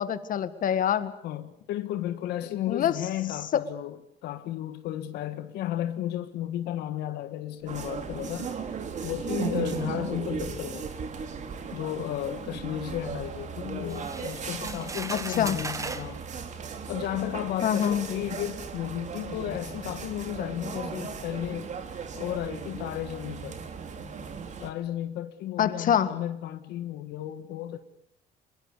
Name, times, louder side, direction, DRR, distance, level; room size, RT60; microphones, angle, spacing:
voice 1, 0.0-1.1 2.7-2.9 3.5-3.6 15.1-15.6 17.6-18.1 25.6-26.1, left 9 dB, 55° left, 1.8 m, -25 dB
voice 2, 1.2-8.5 9.0-10.9 11.7-16.2 16.9-21.7 22.1-23.6 24.6-27.8, left 12 dB, 80° left, 1.6 m, -33 dB
sound 1, 7.6-22.1, right 7 dB, 85° right, 4.0 m, -45 dB
sound 2, 7.7-24.7, right 6 dB, 45° right, 3.2 m, -37 dB
sound 3, 13.9-16.1 17.1-17.2 17.8-18.0, right 3 dB, 20° right, 1.4 m, -38 dB
24.0 x 22.0 x 8.3 m
cardioid pair, 110°, 17 cm